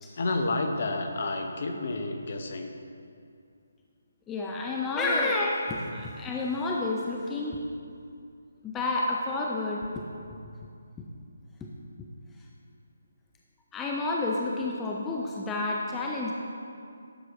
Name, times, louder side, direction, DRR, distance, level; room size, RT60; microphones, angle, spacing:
voice 1, 0.2-2.7, left 2 dB, 50° left, 4 dB, 0.8 m, -30 dB
voice 2, 4.3-7.6 8.6-10.0 11.6-11.7 13.7-16.3, left 2 dB, 10° left, -2 dB, 0.5 m, -30 dB
11.5 x 6.2 x 3.0 m, 2.4 s
figure-of-eight pair, 145°, 0 cm